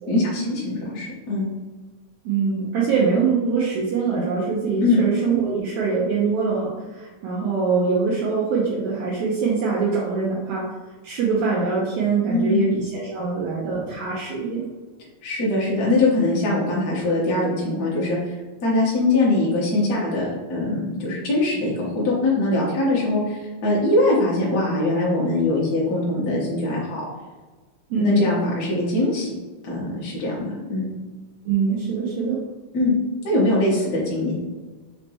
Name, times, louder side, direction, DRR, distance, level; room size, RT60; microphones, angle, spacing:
voice 1, 0.1-1.5 4.8-5.0 12.3-12.7 15.2-18.2 18.6-27.0 28.0-29.3 29.6-30.9 32.7-32.9 33.2-34.3, left 2 dB, 55° left, -5 dB, 1.0 m, -22 dB
voice 2, 2.3-10.7 11.0-14.6 27.9-28.3 31.5-32.4, right 5 dB, 75° right, -5 dB, 1.9 m, -23 dB
5.1 x 3.3 x 2.9 m, 1.3 s
omnidirectional pair, 3.6 m